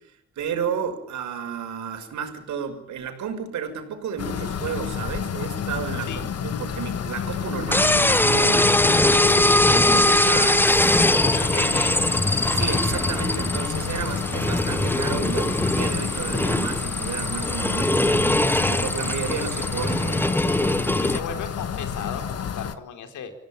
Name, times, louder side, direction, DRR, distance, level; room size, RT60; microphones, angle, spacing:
voice 1, 0.4-8.7 9.1-11.1 12.5-20.2, right 6 dB, 70° right, 6 dB, 6.2 m, -32 dB
sound 1, 4.2-22.7, left 7 dB, 55° left, 1.9 m, -31 dB
sound 2, 7.7-21.2, left 1 dB, 5° left, 1.1 m, -21 dB
voice 2, 11.1-12.2 20.8-23.3, left 7 dB, 75° left, 6 dB, 4.6 m, -35 dB
26.5 x 17.5 x 8.9 m, 0.70 s
cardioid pair, 90°, 30 cm